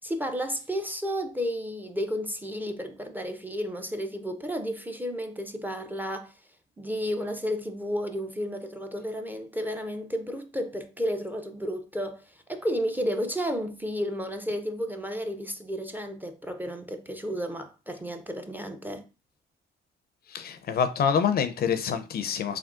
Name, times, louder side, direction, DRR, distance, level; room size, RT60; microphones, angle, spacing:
voice 1, 0.0-6.3 6.8-19.0, equal, 10° right, 0.4 m, -32 dB
voice 2, 20.3-22.6, left 7 dB, 50° left, 0.4 m, -26 dB
3.5 x 2.4 x 2.4 m
cardioid pair, 90°, 20 cm